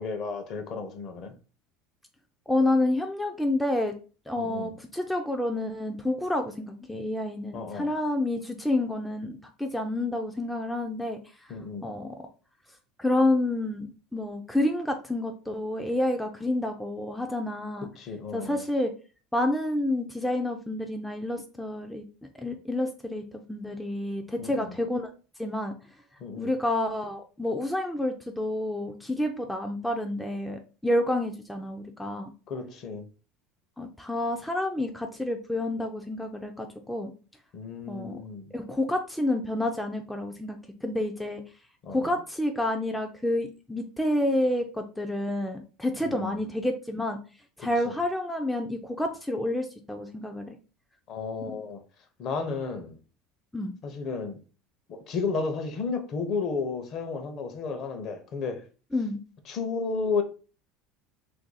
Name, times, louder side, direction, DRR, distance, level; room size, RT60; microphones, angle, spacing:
voice 1, 0.0-1.3 4.4-4.7 7.5-7.9 11.5-11.9 18.0-18.6 24.4-24.8 26.2-26.5 32.5-33.1 37.5-38.5 41.8-42.1 46.0-46.4 47.6-47.9 51.1-51.8 52.2-53.0 53.8-54.4 54.9-58.6 59.5-60.2, left 4 dB, 45° left, 0.6 m, -33 dB
voice 2, 2.5-3.9 4.3-11.5 11.8-12.2 13.0-17.9 18.3-18.9 19.3-22.0 22.4-25.1 25.4-25.7 26.4-32.3 33.8-37.1 37.9-38.2 38.5-41.4 41.9-47.2 47.6-50.6 51.4-51.6 53.5-53.7 58.9-59.2, left 1 dB, 5° left, 0.3 m, -29 dB
2.6 x 2.5 x 3.8 m
supercardioid pair, 140°, 0 cm